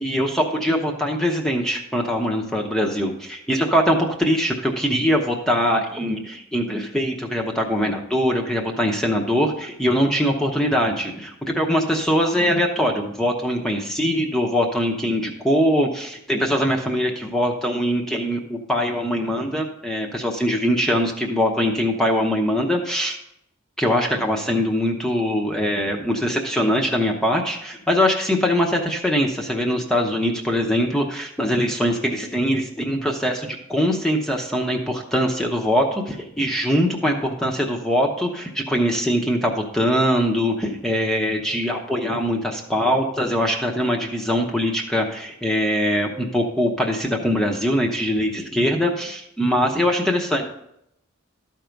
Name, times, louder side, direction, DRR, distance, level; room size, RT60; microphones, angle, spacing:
voice 1, 0.0-23.2 23.8-50.5, equal, 5° left, 1 dB, 0.8 m, -22 dB
12.5 x 4.6 x 5.2 m, 0.77 s
head